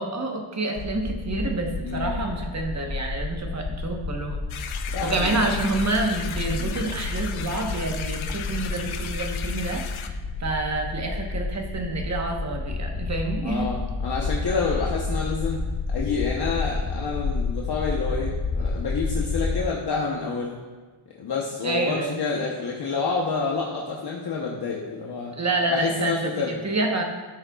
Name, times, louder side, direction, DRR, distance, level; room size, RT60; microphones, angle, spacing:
voice 1, 0.0-4.5 5.0-13.7 21.6-22.1 25.4-27.0, right 2 dB, 35° right, 2 dB, 1.1 m, -28 dB
sound 1, 0.8-19.6, left 3 dB, 30° left, 0.4 m, -30 dB
voice 2, 1.8-2.1 4.9-5.4 6.6-6.8 13.4-15.6 15.9-20.5 21.2-25.3 25.7-26.6, left 4 dB, 50° left, -2 dB, 1.0 m, -28 dB
sound 2, 4.5-10.1, left 8 dB, 70° left, 0.7 m, -36 dB
13.0 x 6.5 x 2.4 m, 1.4 s
wide cardioid pair, 145°, 50 cm